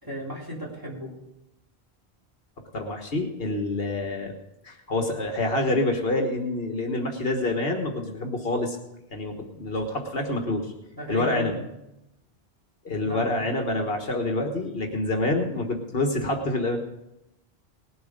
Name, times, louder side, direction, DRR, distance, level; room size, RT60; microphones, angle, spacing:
voice 1, 0.0-1.1 10.9-11.7 13.0-13.4, left 1 dB, 20° right, -5 dB, 3.8 m, -35 dB
voice 2, 2.7-4.3 4.6-8.8 9.1-10.7 11.1-11.5 12.8-16.8, left 2 dB, 65° left, 3 dB, 1.7 m, -27 dB
19.5 x 8.0 x 5.2 m, 0.89 s
omnidirectional pair, 1.1 m